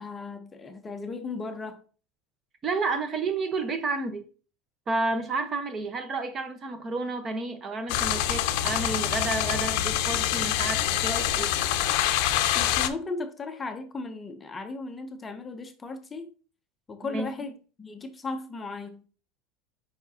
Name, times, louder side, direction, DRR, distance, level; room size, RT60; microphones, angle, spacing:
voice 1, 0.0-1.8 12.5-16.3 16.9-19.0, left 3 dB, 15° left, 0.6 m, -36 dB
voice 2, 2.6-4.2 4.9-11.5 17.1-17.3, right 3 dB, 25° right, 1.0 m, -30 dB
sound 1, 7.9-12.9, left 12 dB, 65° left, 0.6 m, -26 dB
7.1 x 5.0 x 2.8 m
supercardioid pair, 155°, 0 cm